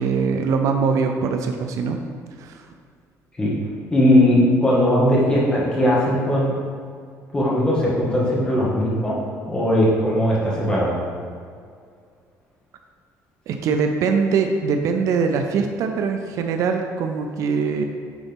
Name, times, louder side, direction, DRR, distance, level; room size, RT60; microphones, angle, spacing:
voice 1, 0.0-2.0 2.4-2.6 13.5-17.8, right 5 dB, 60° right, 5 dB, 0.5 m, -22 dB
voice 2, 3.9-6.5 7.3-9.2 9.5-11.0, left 1 dB, 15° left, -6 dB, 1.8 m, -18 dB
9.5 x 4.1 x 3.6 m, 2.2 s
cardioid pair, 160°, 6 cm